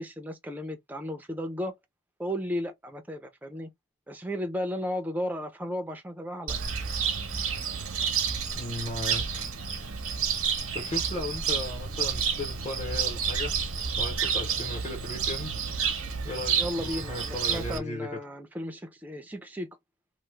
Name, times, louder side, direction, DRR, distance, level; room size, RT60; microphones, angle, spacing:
voice 1, 0.0-1.8 2.2-3.7 4.1-6.6 16.6-19.8, equal, 10° right, 0.5 m, -34 dB
Cricket, 6.5-17.8, right 6 dB, 85° right, 0.9 m, -30 dB
voice 2, 8.5-9.4 10.7-13.5 14.0-15.5 16.2-18.1, left 2 dB, 30° left, 0.8 m, -36 dB
2.9 x 2.1 x 3.2 m
head